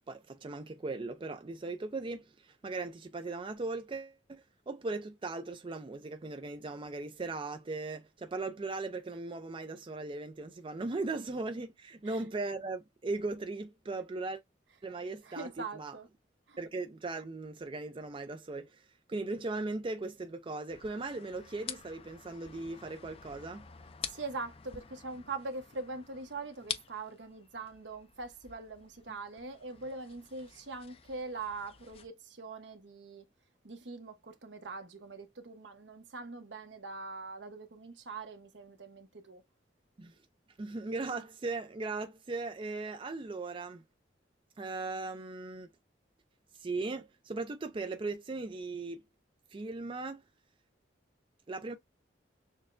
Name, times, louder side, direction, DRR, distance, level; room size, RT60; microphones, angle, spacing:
voice 1, 0.1-14.4 14.8-15.9 16.6-18.8 19.1-23.7 40.0-40.1 40.6-43.8 44.6-45.7 46.6-49.0 49.5-50.2 51.5-51.7, right 3 dB, 30° right, 0.4 m, -38 dB
voice 2, 15.2-16.1 16.5-16.6 24.1-33.3 33.6-39.4, right 3 dB, 75° right, 1.0 m, -42 dB
sound 1, 20.7-32.1, left 7 dB, 30° left, 0.4 m, -48 dB
6.4 x 2.2 x 2.5 m
head